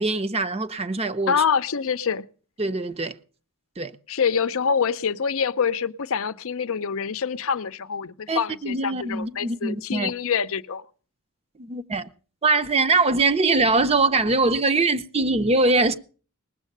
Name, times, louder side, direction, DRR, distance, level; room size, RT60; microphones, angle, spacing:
voice 1, 0.0-1.4 2.6-3.1 3.8-3.9 8.3-10.1 11.6-12.1 12.4-15.9, right 3 dB, 30° right, 0.6 m, -22 dB
voice 2, 1.3-2.3 4.1-10.8, left 6 dB, 70° left, 0.6 m, -25 dB
19.5 x 7.4 x 6.6 m
head